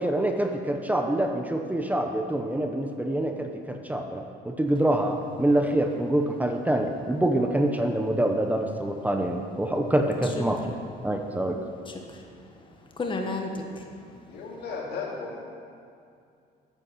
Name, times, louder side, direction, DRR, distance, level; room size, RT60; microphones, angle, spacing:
voice 1, 0.0-10.6 11.0-11.6, right 1 dB, 10° right, 4 dB, 0.9 m, -26 dB
voice 2, 10.2-10.8 11.8-14.4, left 2 dB, 30° left, 2 dB, 1.4 m, -35 dB
voice 3, 14.3-15.4, left 4 dB, 75° left, -2 dB, 2.4 m, -35 dB
9.6 x 8.6 x 6.3 m, 2.4 s
cardioid pair, 100°, 17 cm